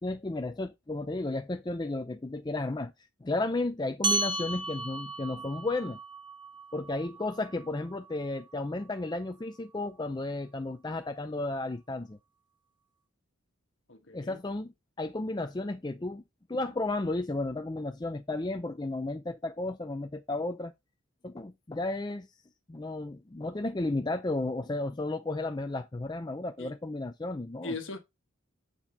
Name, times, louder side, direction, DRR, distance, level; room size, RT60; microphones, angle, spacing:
voice 1, 0.0-2.9 3.2-6.0 6.7-12.2 14.1-16.2 16.5-20.7 21.2-22.3 22.7-27.7, left 2 dB, 20° left, 0.4 m, -33 dB
sound 1, 4.0-8.8, right 2 dB, 20° right, 1.2 m, -35 dB
voice 2, 13.9-14.4 16.5-16.6 26.6-26.7 27.6-28.0, left 2 dB, 65° left, 1.4 m, -39 dB
8.0 x 4.3 x 4.0 m
head